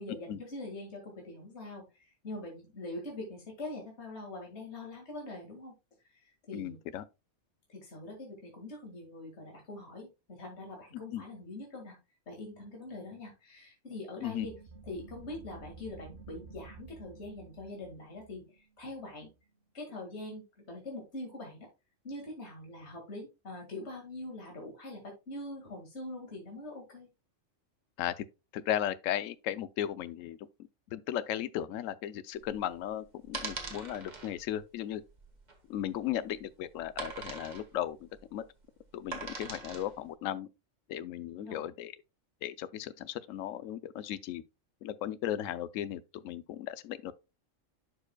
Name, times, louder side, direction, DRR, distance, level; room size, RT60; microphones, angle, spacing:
voice 1, 0.0-5.8 6.1-6.8 7.7-12.0 12.3-14.5 14.8-19.3 19.7-21.7 22.0-27.1 41.4-41.6, left 2 dB, 55° left, 2.3 m, -43 dB
voice 2, 6.5-7.0 11.1-11.2 14.2-14.5 28.0-28.3 28.5-30.4 30.9-35.0 35.7-38.4 38.9-40.5 40.9-41.9 42.4-44.4 44.8-47.1, left 11 dB, 80° left, 1.0 m, -36 dB
sound 1, 14.3-19.6, right 4 dB, 55° right, 1.3 m, -52 dB
sound 2, 32.4-40.0, right 4 dB, 35° right, 1.6 m, -42 dB
11.5 x 4.9 x 2.2 m
omnidirectional pair, 1.3 m